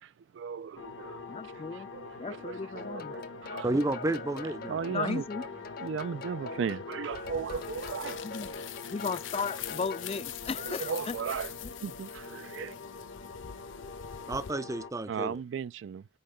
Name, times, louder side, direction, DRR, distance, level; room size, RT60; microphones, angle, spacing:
voice 1, 0.0-3.7 4.6-5.3 5.8-8.2 10.6-11.5 11.8-12.8 15.1-16.1, right 6 dB, 75° right, 0.3 m, -37 dB
sound 1, 0.8-14.9, left 4 dB, 70° left, 1.2 m, -44 dB
voice 2, 1.3-1.9 2.2-3.1 4.9-5.5 8.2-8.5 8.9-11.2, left 4 dB, 30° left, 0.4 m, -35 dB
sound 2, 2.8-10.1, left 3 dB, 50° left, 0.8 m, -44 dB
voice 3, 3.6-4.8 14.3-15.4, right 2 dB, 15° right, 0.5 m, -31 dB
sound 3, 7.1-14.5, left 11 dB, 85° left, 0.6 m, -44 dB
5.4 x 4.7 x 5.1 m
head